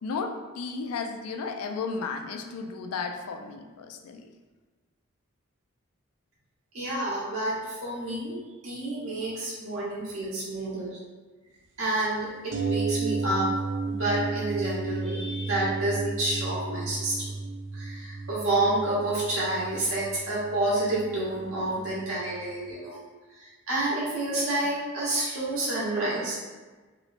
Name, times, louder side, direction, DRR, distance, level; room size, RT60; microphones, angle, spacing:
voice 1, 0.0-4.3, left 4 dB, 85° left, 5 dB, 0.4 m, -34 dB
voice 2, 6.7-8.4 8.6-11.0 11.8-13.5 13.9-17.1 17.7-22.9 23.4-26.4, right 2 dB, 70° right, -7 dB, 1.1 m, -29 dB
sound 1, 12.5-22.4 22.7-22.8, right 4 dB, 55° right, 0.3 m, -33 dB
3.0 x 3.0 x 2.5 m, 1.3 s
head